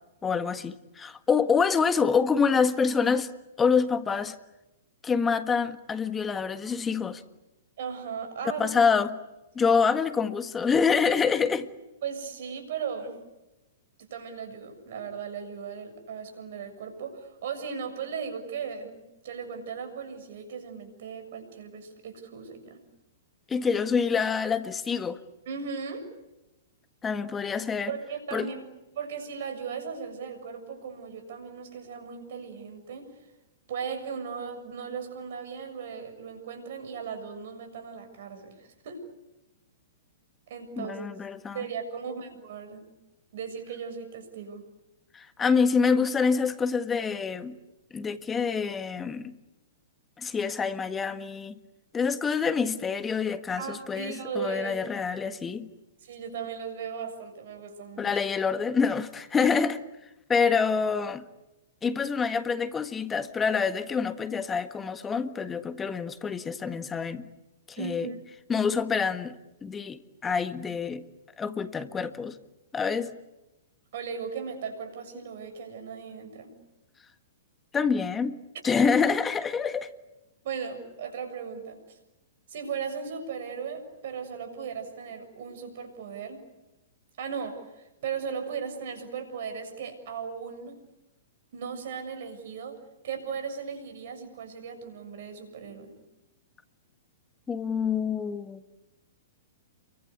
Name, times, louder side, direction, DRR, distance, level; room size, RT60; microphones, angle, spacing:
voice 1, 0.2-3.3 3.6-4.3 5.0-7.2 8.6-9.2 9.5-11.7 23.5-25.2 27.0-27.9 28.3-28.5 40.8-41.6 45.1-47.6 47.9-49.4 50.2-51.5 51.9-55.7 58.0-59.8 60.3-61.2 61.8-67.3 67.7-68.1 68.5-71.0 71.4-72.4 72.7-73.1 77.7-78.4 78.6-79.9 97.5-98.6, left 5 dB, 15° left, 1.6 m, -26 dB
voice 2, 7.8-8.9 9.7-9.8 12.0-13.2 14.0-22.8 25.5-26.1 27.9-28.6 29.0-33.1 33.7-39.0 40.5-41.0 41.5-42.9 43.3-44.6 53.6-54.8 56.0-58.1 67.8-68.3 72.8-73.0 73.9-76.5 80.4-82.0 82.5-86.4 87.2-90.8 91.5-92.8 93.0-95.9, right 6 dB, 60° right, 7.1 m, -37 dB
29.5 x 24.0 x 8.4 m
hypercardioid pair, 120°, 0 cm